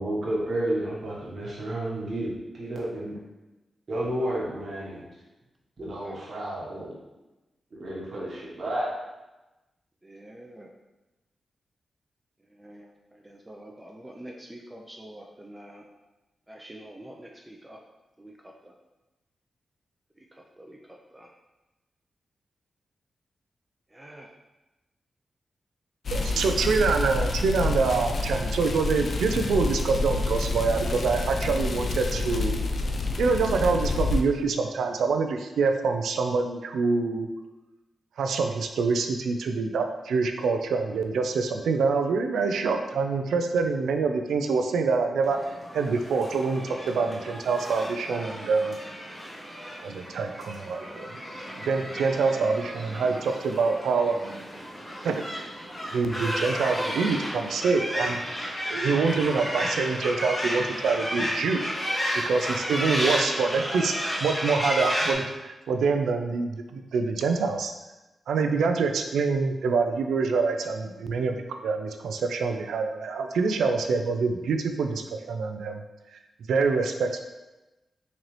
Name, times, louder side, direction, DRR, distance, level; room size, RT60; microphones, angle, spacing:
voice 1, 0.0-3.2 3.9-5.0 5.8-7.0 7.7-8.9, right 1 dB, 60° right, -5 dB, 1.1 m, -31 dB
voice 2, 10.0-10.7 12.4-15.8 16.5-17.8 18.2-18.7 20.2-21.3 23.9-24.3, right 1 dB, 20° right, 0 dB, 0.5 m, -46 dB
sound 1, 26.0-34.2, left 3 dB, 65° left, 0.4 m, -28 dB
voice 3, 26.1-32.6 33.2-37.3 38.2-45.4 45.7-48.8 49.8-51.1 51.7-54.4 55.0-55.2 55.9-58.2 58.7-61.6 62.1-67.7 68.3-71.4 71.6-75.8 76.5-77.2, right 4 dB, 85° right, 5 dB, 0.3 m, -26 dB
sound 2, 45.2-65.1, equal, 25° left, 1.2 m, -32 dB
3.8 x 2.9 x 3.1 m, 1.1 s
supercardioid pair, 45°, 0 cm